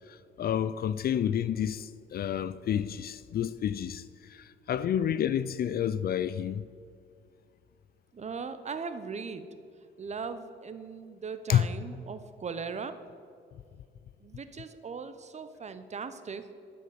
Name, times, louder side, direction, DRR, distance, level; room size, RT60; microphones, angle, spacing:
voice 1, 0.1-6.6 11.5-11.7, left 9 dB, 50° left, 0.4 m, -29 dB
voice 2, 8.1-9.5 10.0-12.9 14.2-16.5, right 5 dB, 35° right, 0.7 m, -39 dB
12.0 x 5.2 x 6.9 m
cardioid pair, 90°, 20 cm